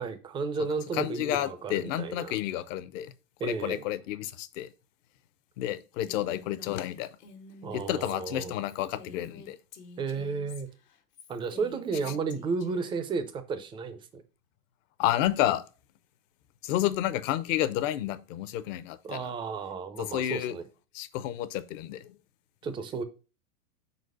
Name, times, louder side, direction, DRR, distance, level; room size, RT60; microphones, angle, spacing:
voice 1, 0.0-2.4 3.4-3.8 7.6-8.5 10.0-10.7 11.3-14.2 19.0-20.6 22.6-23.0, right 4 dB, 10° right, 0.4 m, -33 dB
voice 2, 0.9-3.1 3.4-4.7 5.6-7.1 7.7-9.6 15.0-15.6 16.6-19.3 20.0-20.6 20.9-22.2, left 13 dB, 55° left, 0.7 m, -30 dB
Female speech woman speaking, 6.0-13.0, left 4 dB, 80° left, 1.4 m, -50 dB
4.4 x 4.2 x 5.4 m
hypercardioid pair, 110°, 46 cm